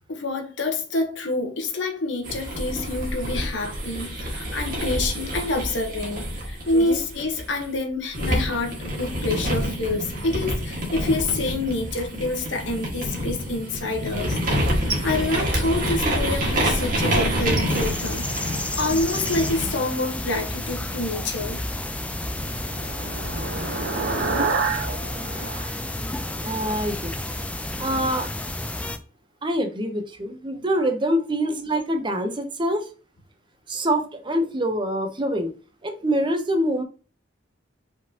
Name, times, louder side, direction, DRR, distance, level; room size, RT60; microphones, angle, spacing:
voice 1, 0.1-14.4 14.8-18.4 18.8-21.6, left 2 dB, 85° left, 1.0 m, -27 dB
sound 1, 2.2-7.6 8.1-19.8, equal, 50° right, 1.6 m, -27 dB
sound 2, 17.7-29.0, left 1 dB, 5° left, 0.4 m, -31 dB
sound 3, 21.9-26.7, right 4 dB, 65° right, 0.8 m, -29 dB
voice 2, 26.4-27.1 27.8-28.3 29.4-32.9 33.7-35.5 35.8-36.8, equal, 25° right, 0.8 m, -25 dB
5.0 x 3.8 x 2.8 m
head